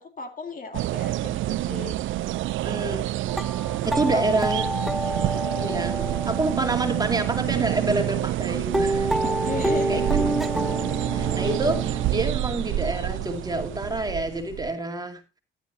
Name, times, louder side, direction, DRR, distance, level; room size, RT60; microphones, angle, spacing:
voice 1, 0.0-2.0 3.9-4.7 9.2-10.0, left 4 dB, 45° left, 7 dB, 2.1 m, -35 dB
sound 1, 0.7-14.7, right 15 dB, 75° right, 0.5 m, -28 dB
voice 2, 2.6-3.0 3.8-4.6 5.6-9.1 9.9-10.2 10.9-15.2, right 2 dB, 20° right, 4 dB, 2.4 m, -27 dB
sound 2, 3.3-8.3 8.7-12.1, equal, ahead, 0.6 m, -29 dB
13.0 x 11.0 x 2.7 m, 0.28 s
cardioid pair, 90°, 20 cm